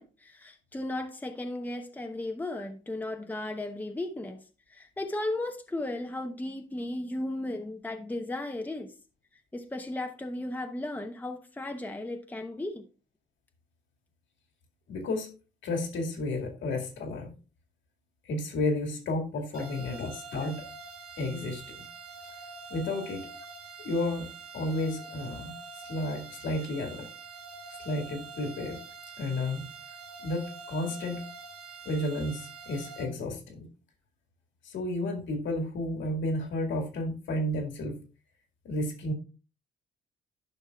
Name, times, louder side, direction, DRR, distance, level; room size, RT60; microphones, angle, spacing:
voice 1, 0.0-4.4 4.7-8.9 9.5-12.9 19.6-19.7, left 1 dB, 10° left, 0.8 m, -35 dB
voice 2, 14.9-15.3 15.6-17.3 18.3-20.6 21.2-21.8 22.7-23.3 23.8-24.3 24.5-25.5 25.8-27.1 27.7-28.8 29.2-29.7 30.2-31.2 31.9-33.7 34.6-38.0 38.6-39.1, left 1 dB, 70° left, 2.1 m, -32 dB
sound 1, 19.5-33.0, right 4 dB, 90° right, 2.8 m, -45 dB
11.5 x 5.4 x 2.3 m
cardioid pair, 90°, 20 cm